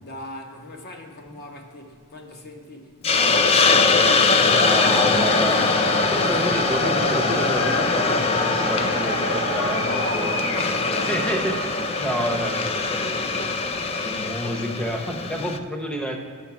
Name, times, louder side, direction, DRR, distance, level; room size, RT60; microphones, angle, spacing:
voice 1, 0.0-5.8 6.2-6.6 9.7-11.5, left 2 dB, 45° left, 3 dB, 0.9 m, -38 dB
Hiss, 3.0-15.6, left 4 dB, 25° left, 0.3 m, -22 dB
Cheering / Crowd, 4.2-10.9, left 2 dB, 75° left, 1.0 m, -28 dB
sound 1, 4.3-14.0, right 7 dB, 50° right, 0.6 m, -38 dB
voice 2, 4.5-5.6 6.1-10.4 11.1-11.6 12.0-16.2, equal, 5° left, 2 dB, 0.7 m, -29 dB
6.8 x 5.5 x 5.8 m, 2.2 s
head